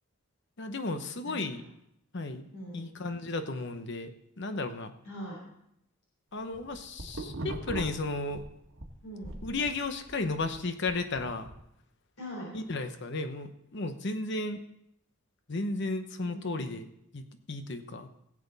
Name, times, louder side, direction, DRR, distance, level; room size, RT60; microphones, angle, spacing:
voice 1, 0.6-1.6 2.1-2.4 2.7-4.1 4.4-4.9 6.3-8.4 9.4-11.5 12.5-14.6 15.5-16.9 17.1-17.2 17.5-18.1, left 2 dB, 55° left, 9 dB, 0.9 m, -34 dB
voice 2, 1.2-1.6 2.5-2.9 5.0-5.4 9.0-9.4 12.2-12.5 16.2-16.7, equal, 85° left, -3 dB, 3.6 m, -42 dB
sound 1, 6.4-8.9 9.2-11.6, right 2 dB, 75° right, 1.7 m, -40 dB
16.5 x 7.6 x 4.0 m, 0.78 s
head